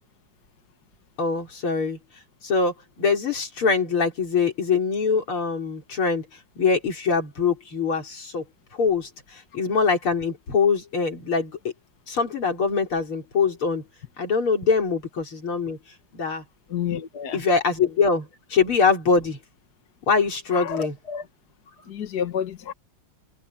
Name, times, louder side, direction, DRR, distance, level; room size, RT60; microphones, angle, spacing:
voice 1, 1.2-2.0 2.4-6.3 6.6-8.4 8.7-11.7 12.1-13.8 14.2-15.8 16.1-16.4 17.3-19.4 20.1-20.9, left 5 dB, 85° left, 4.9 m, -23 dB
voice 2, 16.7-17.4 20.5-21.3 21.9-22.7, left 8 dB, 50° left, 1.9 m, -30 dB
omnidirectional pair, 2.3 m